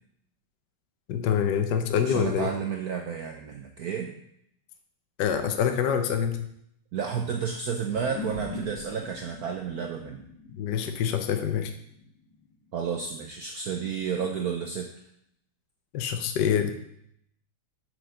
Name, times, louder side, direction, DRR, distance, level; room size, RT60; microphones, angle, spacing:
voice 1, 1.1-2.5 5.2-6.4 10.6-11.7 15.9-16.7, left 8 dB, 65° left, 6 dB, 1.2 m, -25 dB
voice 2, 2.0-4.1 6.9-10.2 12.7-14.9, right 7 dB, 75° right, 3 dB, 0.8 m, -31 dB
sound 1, 7.9-12.7, left 3 dB, 85° left, 2.2 m, -42 dB
6.1 x 5.0 x 6.3 m, 0.72 s
omnidirectional pair, 2.4 m